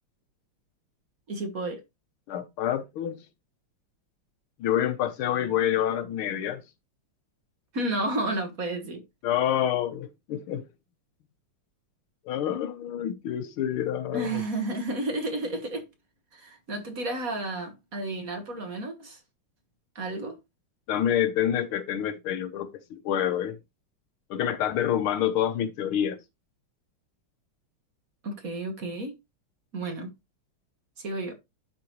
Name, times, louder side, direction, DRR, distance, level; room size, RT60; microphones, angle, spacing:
voice 1, 1.3-1.8 7.7-9.0 14.1-15.8 16.3-19.2 20.0-20.4 28.2-29.2 29.7-30.1 31.0-31.3, right 2 dB, 45° right, 1.8 m, -31 dB
voice 2, 2.3-3.2 4.6-6.6 9.2-10.6 12.3-14.4 20.9-23.6 24.3-26.2, left 10 dB, 85° left, 1.8 m, -27 dB
11.5 x 4.8 x 3.1 m
omnidirectional pair, 2.3 m